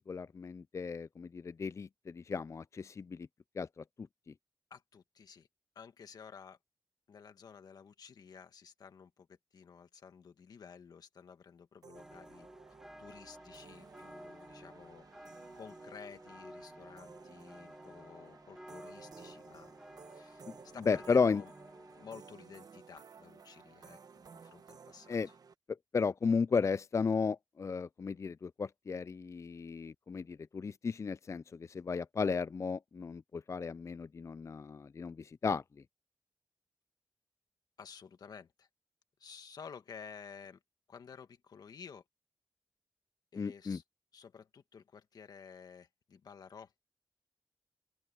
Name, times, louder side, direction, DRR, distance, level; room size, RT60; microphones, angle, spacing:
voice 1, 0.1-3.3 3.6-4.1 20.9-21.4 25.1-25.3 25.9-35.6 43.4-43.8, left 5 dB, 50° left, 0.3 m, -34 dB
voice 2, 4.7-5.5 5.8-6.6 7.1-12.5 13.0-15.0 15.6-19.7 20.1-20.4 20.7-21.5 21.9-25.3 37.8-38.7 39.2-40.6 40.9-42.0 43.3-43.8 44.1-46.7, left 6 dB, 90° left, 1.8 m, -53 dB
sound 1, 11.8-25.5, right 5 dB, 75° right, 1.1 m, -56 dB
sound 2, 11.9-22.1, equal, 5° right, 2.0 m, -53 dB
open air
cardioid pair, 45°, 7 cm